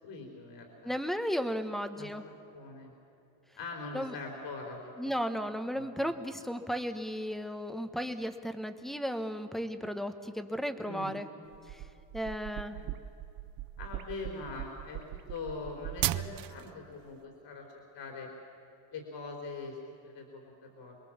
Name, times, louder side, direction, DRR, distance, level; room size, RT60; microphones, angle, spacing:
voice 1, 0.0-0.9 2.0-2.9 3.6-5.0 5.7-6.1 10.8-11.1 12.7-12.9 13.8-18.3 18.9-19.8 20.0-21.0, left 3 dB, 55° left, 1 dB, 4.0 m, -43 dB
voice 2, 0.8-2.2 3.9-4.1 5.0-11.3 11.7-11.8 12.1-12.9, equal, ahead, 9 dB, 1.1 m, -35 dB
sound 1, 11.5-16.7, right 14 dB, 45° right, 0.6 m, -37 dB
27.5 x 22.0 x 7.3 m, 2.8 s
cardioid pair, 150°, 50 cm